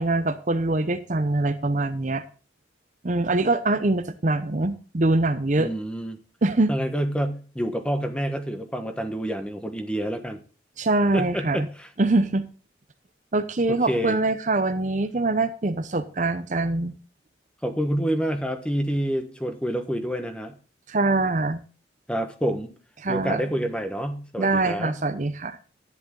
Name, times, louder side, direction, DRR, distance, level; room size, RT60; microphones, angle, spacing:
voice 1, 0.0-2.2 3.0-5.7 6.4-6.7 10.8-11.7 12.0-12.4 13.3-16.9 20.9-21.6 23.0-23.5 24.4-25.6, right 2 dB, 40° right, 10 dB, 0.7 m, -23 dB
voice 2, 5.6-6.2 6.7-10.4 11.1-11.9 13.7-14.2 17.6-20.5 22.1-22.7 23.1-25.0, equal, 5° left, 7 dB, 1.3 m, -28 dB
11.0 x 10.5 x 3.8 m, 0.37 s
head